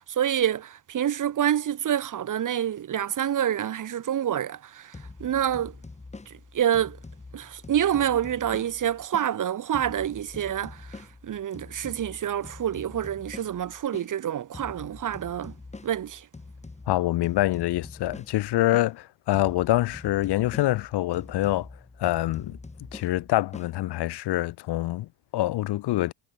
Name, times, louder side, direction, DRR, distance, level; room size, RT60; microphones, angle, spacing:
voice 1, 0.2-4.9 5.2-5.7 6.5-7.0 7.3-15.5 15.8-16.2, right 10 dB, 40° right, 1.5 m, -27 dB
sound 1, 4.9-9.3 9.7-14.1 14.5-18.9 19.3-23.7, left 3 dB, 15° left, 3.4 m, -45 dB
voice 2, 16.9-21.7 22.0-22.6 22.9-26.1, left 16 dB, 55° left, 0.9 m, -25 dB
cardioid pair, 125°, 49 cm